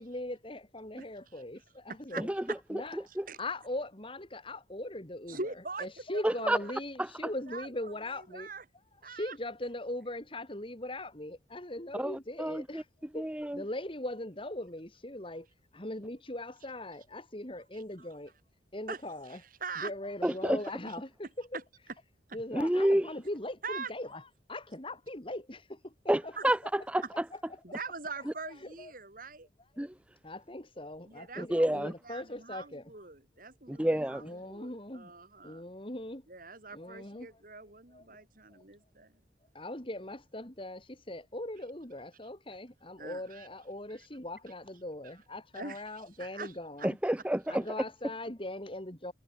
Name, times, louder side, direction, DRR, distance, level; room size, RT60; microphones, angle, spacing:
voice 1, 0.0-2.3 2.7-3.0 3.4-5.4 5.8-8.5 9.1-12.8 13.1-15.5 15.7-18.3 18.7-19.4 19.8-21.6 22.3-24.2 24.5-26.3 27.5-27.6 28.6-28.9 30.2-32.9 33.9-35.1 35.4-36.3 36.7-37.3 37.9-38.1 38.5-38.6 39.5-47.0 47.5-49.1, left 1 dB, 30° left, 2.9 m, -40 dB
voice 2, 1.9-2.6 3.3-3.4 5.3-6.8 7.5-7.9 8.3-8.6 9.0-9.4 17.7-18.1 18.9-19.0 19.3-19.9 20.2-20.5 20.9-21.0 23.6-23.9 26.4-26.5 27.6-29.5 31.0-35.6 36.3-39.2 43.0-43.5 43.9-44.0 45.5-46.5 46.8-46.9, right 4 dB, 50° right, 4.1 m, -43 dB
voice 3, 2.7-3.3 6.2-6.6 12.0-12.8 13.1-13.6 20.2-20.6 22.5-23.1 26.1-27.0 28.3-28.4 29.8-29.9 31.4-31.9 33.7-34.2 46.8-47.6, right 1 dB, 5° right, 0.6 m, -29 dB
head